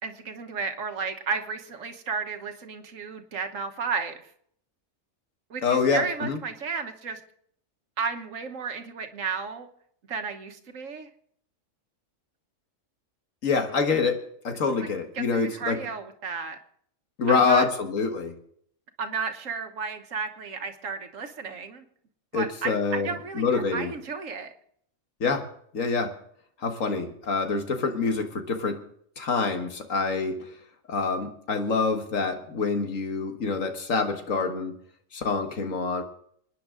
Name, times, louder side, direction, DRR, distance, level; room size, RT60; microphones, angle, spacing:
voice 1, 0.0-4.2 5.5-7.2 8.0-9.7 10.1-11.1 14.7-14.9 15.1-16.6 17.3-17.7 19.0-21.8 22.3-24.5, right 5 dB, 80° right, 6 dB, 1.6 m, -33 dB
voice 2, 5.6-6.4 13.4-14.2 14.4-15.8 17.2-18.3 22.3-23.1 23.4-23.9 25.2-25.5 25.7-26.1 26.6-28.8 29.2-30.5 30.9-34.7 35.1-36.0, left 4 dB, 90° left, 5 dB, 1.9 m, -26 dB
26.0 x 10.0 x 3.8 m, 0.65 s
omnidirectional pair, 1.3 m